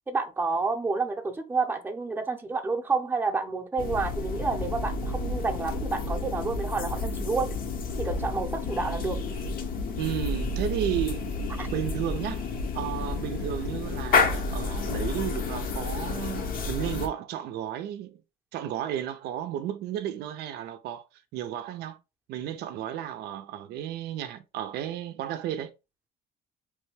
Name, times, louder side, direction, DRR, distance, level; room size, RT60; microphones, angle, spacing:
voice 1, 0.1-7.5 8.0-9.2 11.6-11.7, right 4 dB, 10° right, 0.6 m, -29 dB
sound 1, 3.8-17.1, left 3 dB, 55° left, 0.7 m, -30 dB
voice 2, 9.9-11.3 11.7-12.4 12.7-18.2 18.5-21.1 21.3-22.0 22.3-25.7, right 11 dB, 75° right, 0.4 m, -33 dB
3.2 x 2.2 x 3.1 m
cardioid pair, 110°, 17 cm